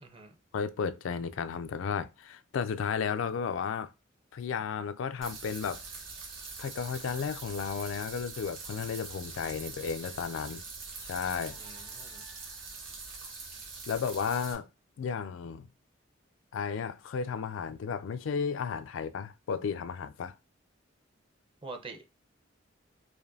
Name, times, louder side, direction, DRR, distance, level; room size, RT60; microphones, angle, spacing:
voice 1, 0.0-0.3 11.6-12.2 21.6-22.0, right 3 dB, 25° right, 0.6 m, -45 dB
voice 2, 0.5-3.9 4.3-5.8 6.6-10.6 11.0-11.6 13.9-14.7 15.0-15.7 16.5-20.3, left 6 dB, 80° left, 0.3 m, -33 dB
sound 1, 5.2-14.5, right 4 dB, 85° right, 1.3 m, -44 dB
5.0 x 2.5 x 2.6 m
head